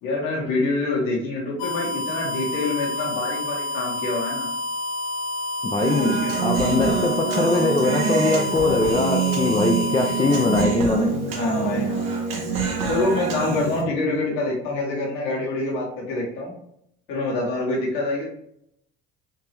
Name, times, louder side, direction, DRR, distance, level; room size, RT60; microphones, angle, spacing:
voice 1, 0.0-4.5 5.9-6.3 6.7-7.0 11.3-12.1 12.8-16.5 17.1-18.3, left 2 dB, 65° left, -4 dB, 1.3 m, -26 dB
sound 1, 1.6-10.6, left 2 dB, 50° left, 0.9 m, -29 dB
voice 2, 5.7-11.1, left 3 dB, 15° left, 1 dB, 0.4 m, -22 dB
Human voice, 5.8-13.8, right 5 dB, 80° right, 0.9 m, -25 dB
3.6 x 2.7 x 2.9 m, 0.75 s
hypercardioid pair, 70°, 29 cm